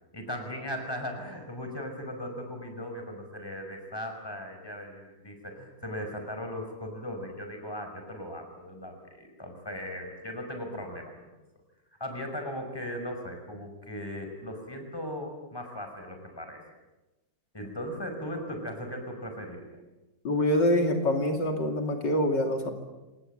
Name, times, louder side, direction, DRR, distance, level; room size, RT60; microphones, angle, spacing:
voice 1, 0.1-11.3 12.0-16.7 17.5-19.7, equal, 15° left, 4 dB, 5.8 m, -38 dB
voice 2, 20.2-22.7, left 1 dB, 85° left, 4 dB, 3.4 m, -25 dB
27.0 x 20.0 x 9.1 m, 1.1 s
omnidirectional pair, 1.9 m